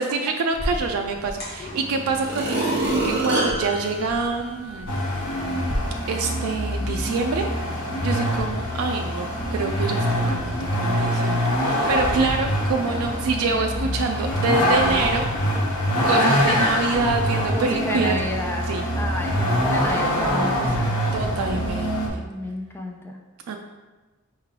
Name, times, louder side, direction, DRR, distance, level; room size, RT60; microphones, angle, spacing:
voice 1, 0.0-4.9 6.1-15.6 16.0-18.1 18.7-18.8 21.1-22.2 23.5-23.6, right 4 dB, 80° right, 3 dB, 0.3 m, -26 dB
sound 1, 0.5-5.8, equal, 45° left, 1.1 m, -36 dB
sound 2, 1.4-1.5 2.1-5.0 5.4-5.5, right 2 dB, 50° right, 1.3 m, -26 dB
Vehicle, 4.9-22.1, equal, 90° left, 0.9 m, -24 dB
voice 2, 17.5-18.7 18.9-23.2, left 1 dB, 10° left, 1 dB, 0.4 m, -32 dB
4.5 x 3.2 x 3.6 m, 1.2 s
head